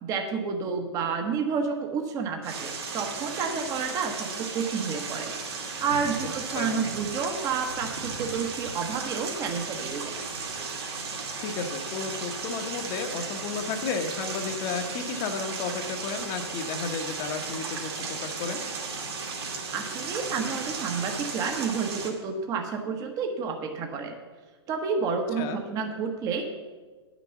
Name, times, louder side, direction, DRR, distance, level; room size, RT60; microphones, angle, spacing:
voice 1, 0.0-5.3 5.8-10.2 19.7-24.1 24.7-26.4, right 5 dB, 25° right, 4 dB, 1.1 m, -30 dB
sound 1, 2.4-22.1, right 4 dB, 65° right, 2.4 m, -35 dB
voice 2, 6.5-6.9 11.4-18.6 25.4-25.6, left 5 dB, 35° left, 6 dB, 1.1 m, -33 dB
10.0 x 6.1 x 7.1 m, 1.3 s
hypercardioid pair, 140°, 14 cm